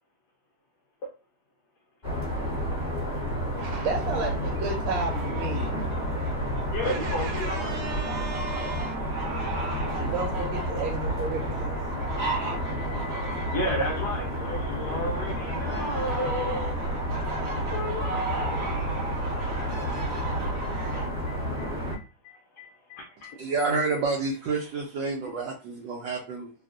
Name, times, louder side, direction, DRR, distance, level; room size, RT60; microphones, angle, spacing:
sound 1, 2.0-22.0, equal, 30° left, 1.1 m, -30 dB
sound 2, 3.6-21.1, right 2 dB, 50° right, 0.7 m, -37 dB
voice 1, 3.6-5.7 6.8-9.1 10.0-11.8, right 4 dB, 90° right, 1.5 m, -33 dB
voice 2, 4.4-4.7 6.7-7.8 9.7-10.3 12.2-19.2 19.9-20.0 20.6-23.6 23.9-24.0, left 1 dB, 70° left, 1.0 m, -35 dB
voice 3, 23.4-26.5, right 4 dB, 75° right, 1.1 m, -29 dB
3.4 x 2.3 x 2.5 m
omnidirectional pair, 2.3 m